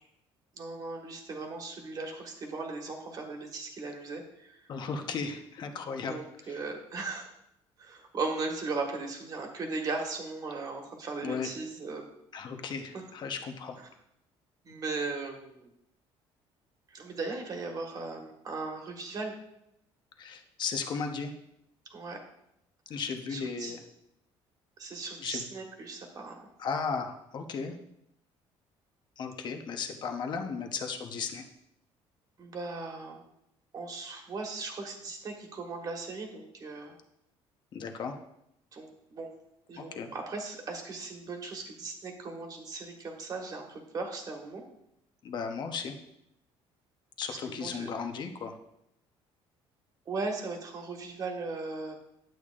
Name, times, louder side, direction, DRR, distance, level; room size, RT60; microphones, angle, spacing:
voice 1, 0.6-4.7 6.1-7.3 7.8-12.0 12.9-13.0 13.8-13.9 14.6-15.7 16.9-19.4 21.9-22.2 22.9-23.0 23.3-23.8 24.8-26.5 32.4-33.2 33.7-36.9 38.7-39.3 39.7-44.6 47.3-47.9 50.1-51.9, right 3 dB, 35° right, 2 dB, 1.5 m, -37 dB
voice 2, 4.7-6.2 6.4-6.6 11.2-11.5 12.3-13.8 20.2-21.3 22.9-23.8 25.2-25.5 26.6-27.7 29.2-31.4 37.7-38.2 39.8-40.1 45.2-46.0 47.2-48.5, left 5 dB, 45° left, 5 dB, 0.9 m, -35 dB
10.5 x 8.4 x 2.5 m, 0.81 s
cardioid pair, 140°, 11 cm